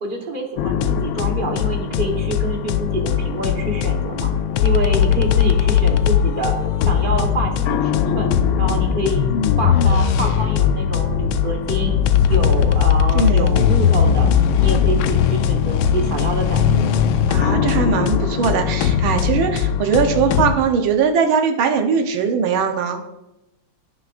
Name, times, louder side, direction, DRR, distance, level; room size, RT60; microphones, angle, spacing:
voice 1, 0.0-4.3 4.6-8.3 8.6-9.3 9.6-12.0 12.3-17.0, right 2 dB, 30° right, 2 dB, 1.1 m, -27 dB
sound 1, 0.6-20.5, left 8 dB, 85° left, 1.4 m, -19 dB
voice 2, 13.1-13.5 17.3-23.0, right 6 dB, 85° right, 4 dB, 1.7 m, -20 dB
15.5 x 6.1 x 2.5 m, 0.91 s
omnidirectional pair, 2.2 m